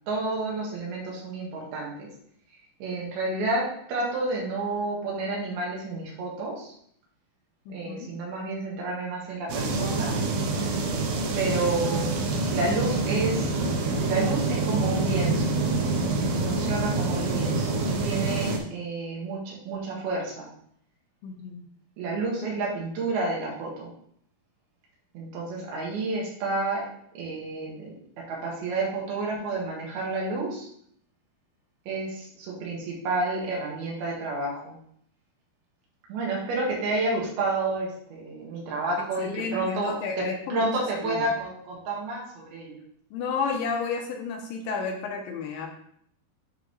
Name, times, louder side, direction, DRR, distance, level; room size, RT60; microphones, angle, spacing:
voice 1, 0.1-2.1 2.8-6.7 7.7-10.2 11.4-12.1 12.5-13.5 14.0-15.6 16.4-20.5 22.0-23.9 25.1-27.9 28.3-30.7 31.9-34.8 36.1-40.2 40.5-42.8, right 2 dB, 90° right, -3 dB, 3.6 m, -30 dB
voice 2, 7.7-8.1 21.2-21.7 39.2-40.7 41.0-41.3 43.1-45.7, left 5 dB, 80° left, 3 dB, 2.3 m, -31 dB
sound 1, 9.5-18.6, right 3 dB, 70° right, 1.9 m, -26 dB
10.0 x 3.6 x 3.1 m, 0.66 s
omnidirectional pair, 4.3 m